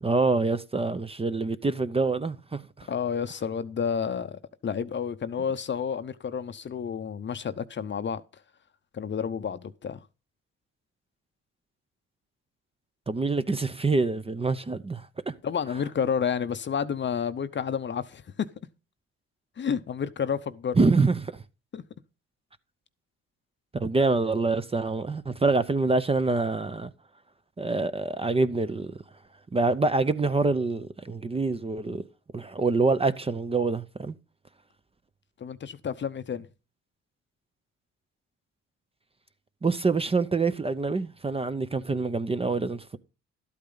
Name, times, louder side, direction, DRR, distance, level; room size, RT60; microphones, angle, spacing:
voice 1, 0.0-2.9 13.1-15.3 20.7-21.4 23.7-26.9 27.6-29.0 29.5-32.0 32.3-34.1 39.6-43.0, right 3 dB, 20° right, 0.6 m, -26 dB
voice 2, 2.9-8.2 8.9-10.0 15.4-18.5 19.6-20.8 21.7-21.8 35.4-36.5, left 7 dB, 40° left, 0.7 m, -30 dB
12.0 x 8.5 x 3.9 m
cardioid pair, 90°, 30 cm